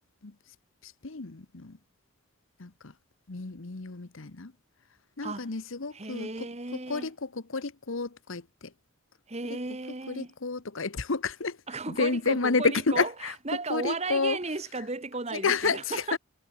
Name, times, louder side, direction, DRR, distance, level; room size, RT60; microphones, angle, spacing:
voice 1, 0.8-1.8 2.6-2.9 3.3-4.5 5.2-8.7 10.1-11.6 11.9-13.3 13.7-14.4 15.3-16.2, left 4 dB, 65° left, 1.0 m, -30 dB
voice 2, 5.9-7.1 9.3-10.3 11.7-16.2, right 3 dB, 30° right, 1.2 m, -35 dB
head